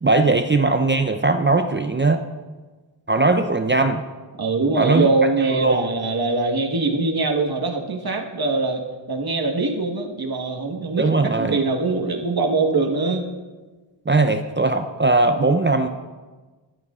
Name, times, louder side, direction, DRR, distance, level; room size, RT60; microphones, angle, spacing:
voice 1, 0.0-2.2 3.1-4.0 4.8-5.1 5.5-5.9 11.0-11.6 14.1-15.9, right 3 dB, 25° right, 7 dB, 0.6 m, -19 dB
voice 2, 4.4-13.2, right 3 dB, 45° right, 2 dB, 1.5 m, -22 dB
12.5 x 11.5 x 2.4 m, 1.3 s
cardioid pair, 40°, 49 cm